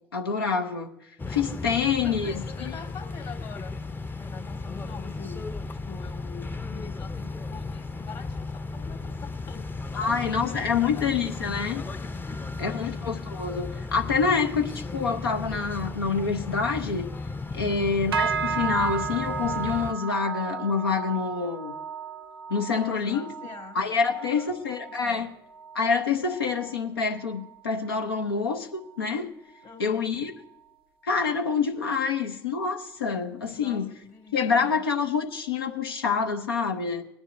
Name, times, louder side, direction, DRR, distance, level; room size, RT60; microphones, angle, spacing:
voice 1, 0.1-0.9 1.3-2.7 10.0-11.9 12.6-17.1 17.5-21.7 22.5-23.3 23.7-25.3 25.7-29.3 29.8-30.3 31.0-33.9 34.3-37.1, left 5 dB, 85° left, 4 dB, 0.7 m, -27 dB
sound 1, 1.2-19.9, left 3 dB, 15° left, 0.6 m, -35 dB
voice 2, 1.5-3.8 4.1-5.5 5.8-9.7 10.0-11.1 12.2-13.0 17.5-18.0 22.7-23.8 24.1-24.5 25.0-25.3 29.6-30.1 33.5-34.8, left 7 dB, 45° left, 5 dB, 1.7 m, -44 dB
sound 2, 18.1-27.7 28.0-28.4 28.8-29.1 29.7-29.8, right 7 dB, 85° right, 0.5 m, -34 dB
19.0 x 9.9 x 2.5 m, 0.81 s
hypercardioid pair, 60°, 12 cm